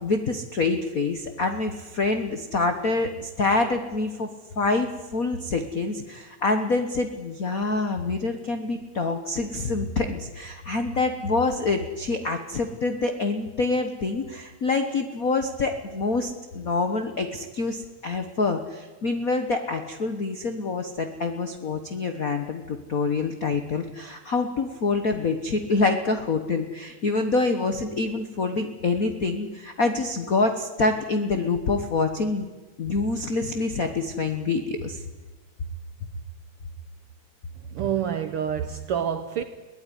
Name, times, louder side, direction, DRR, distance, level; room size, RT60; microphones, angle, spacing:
voice 1, 0.0-4.3 4.6-32.5 32.8-35.0, left 3 dB, 65° left, 0.8 m, -26 dB
voice 2, 37.6-39.4, right 8 dB, 65° right, 1.4 m, -28 dB
22.0 x 17.0 x 9.9 m
omnidirectional pair, 3.4 m